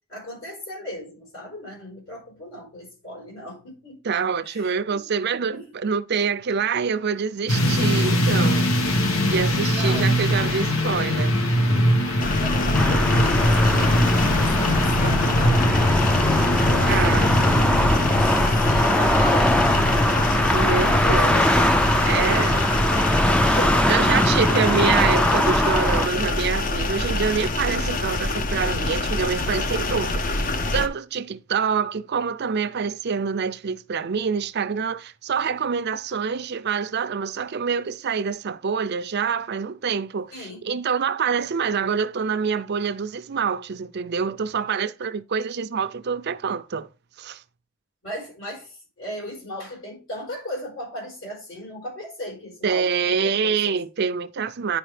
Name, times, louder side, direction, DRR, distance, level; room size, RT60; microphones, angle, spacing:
voice 1, 0.1-4.0 4.4-5.0 5.5-5.7 9.7-10.1 12.4-16.1 16.6-17.8 18.0-19.7 20.6-21.5 22.0-24.0 40.3-40.7 48.0-53.8, equal, 70° left, 4.6 m, -36 dB
voice 2, 4.0-8.7 9.2-11.3 16.9-17.3 20.5-21.4 22.0-22.5 23.9-46.9 47.2-47.4 52.6-54.8, right 6 dB, 55° right, 0.5 m, -26 dB
sound 1, 7.5-22.2, left 1 dB, 90° left, 1.4 m, -23 dB
sound 2, 12.2-30.9, left 2 dB, 40° left, 0.7 m, -26 dB
sound 3, 12.7-26.1, left 1 dB, 5° left, 0.4 m, -21 dB
9.9 x 5.0 x 3.3 m
head